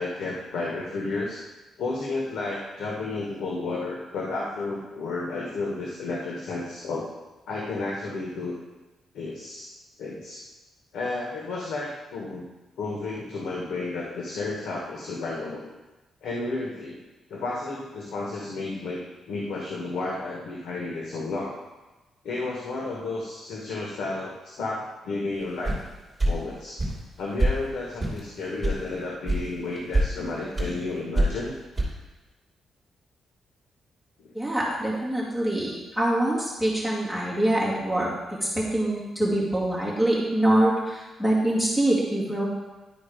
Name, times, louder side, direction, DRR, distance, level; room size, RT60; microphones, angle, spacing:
voice 1, 0.0-1.4 1.8-7.1 7.5-8.6 9.1-9.7 10.0-10.4 10.9-12.5 12.8-15.7 16.2-17.0 17.3-19.0 19.3-21.6 22.2-25.8 26.2-26.8 27.2-31.5 34.2-34.3, left 3 dB, 85° left, -2 dB, 1.3 m, -32 dB
sound 1, 25.6-25.8 26.2-26.3 26.8-27.0 27.4-27.5 28.0-28.2 28.6-28.8 29.3-29.4 29.8-30.1 30.6-30.7 31.1-31.4 31.8-31.9, right 1 dB, 10° right, 2.9 m, -23 dB
voice 2, 34.3-38.1 38.4-42.5, right 1 dB, 5° left, -6 dB, 2.1 m, -24 dB
11.0 x 4.5 x 5.1 m, 1.1 s
cardioid pair, 155°, 0 cm